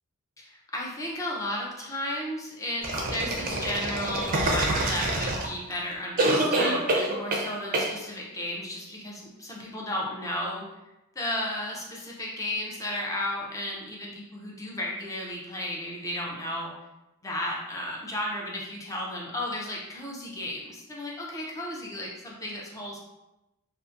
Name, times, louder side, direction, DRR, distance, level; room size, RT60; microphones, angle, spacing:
voice 1, 0.4-10.7 11.2-16.7 17.2-23.0, left 1 dB, 15° left, -3 dB, 0.5 m, -34 dB
sound 1, 2.8-5.7 6.2-7.5 7.7-7.9, right 2 dB, 40° right, 0.4 m, -26 dB
2.6 x 2.5 x 2.4 m, 0.96 s
head